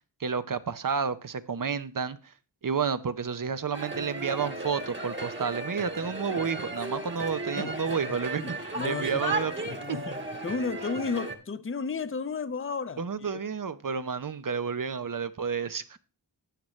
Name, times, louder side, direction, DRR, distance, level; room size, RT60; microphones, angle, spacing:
voice 1, 0.2-2.3 2.6-9.5 9.9-10.0 13.0-16.0, right 6 dB, 50° right, 0.7 m, -31 dB
sound 1, 3.7-11.4, right 2 dB, 25° right, 1.4 m, -35 dB
voice 2, 7.6-9.4 9.7-13.4, left 5 dB, 30° left, 0.6 m, -34 dB
12.5 x 8.6 x 3.1 m
wide cardioid pair, 70°, 43 cm